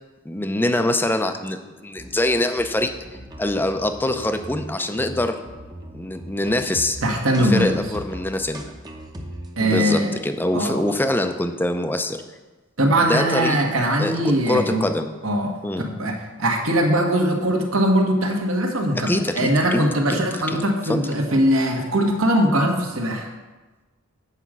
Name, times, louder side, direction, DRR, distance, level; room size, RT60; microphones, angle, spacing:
voice 1, 0.3-2.9 3.4-5.4 5.9-7.0 7.4-8.6 9.6-12.2 13.0-13.6 14.0-15.1 15.6-15.9 19.0-20.2 20.5-20.6 20.9-21.0, left 1 dB, 10° left, 7 dB, 0.5 m, -24 dB
sound 1, 2.0-9.7, right 1 dB, 20° right, 0.8 m, -39 dB
voice 2, 7.0-7.8 9.6-10.1 10.5-10.8 12.8-14.9 15.2-23.3, right 1 dB, 75° right, 2 dB, 1.4 m, -21 dB
8.2 x 5.0 x 7.3 m, 1.2 s
head